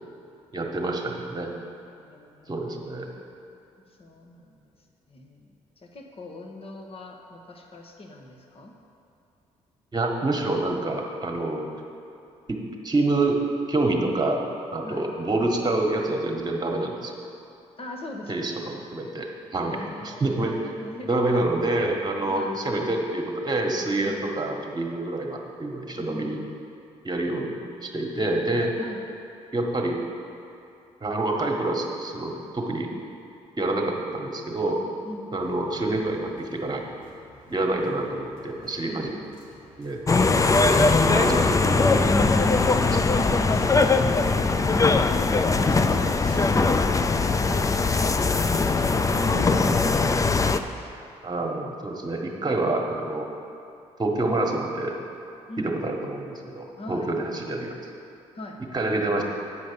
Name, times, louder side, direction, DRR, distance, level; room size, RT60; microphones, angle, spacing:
voice 1, 0.5-1.5 2.5-3.1 9.9-11.7 12.5-13.4 13.7-14.4 14.7-17.1 18.3-20.7 21.0-26.4 27.0-28.8 29.5-30.0 31.0-32.9 33.6-34.8 35.3-36.8 37.5-39.1 39.8-40.0 40.6-42.1 42.7-43.0 51.2-53.3 54.0-55.0 55.6-57.7 58.7-59.2, right 2 dB, 30° right, 2 dB, 1.5 m, -27 dB
voice 2, 2.0-3.3 3.9-4.6 5.1-8.7 14.8-15.1 17.8-18.5 19.7-21.4 22.3-22.7 24.0-24.3 26.0-26.4 28.8-29.0 35.0-35.3 38.8-39.2 42.5-44.3 45.1-47.9 50.7-50.9 55.5-55.8 56.8-57.1 58.3-58.6, left 1 dB, 45° left, 2 dB, 1.4 m, -41 dB
sound 1, 35.3-49.8, left 2 dB, 90° left, 1.6 m, -43 dB
sound 2, 40.1-50.6, left 3 dB, 25° left, 0.5 m, -21 dB
9.1 x 5.2 x 6.9 m, 2.6 s
supercardioid pair, 55°, 14 cm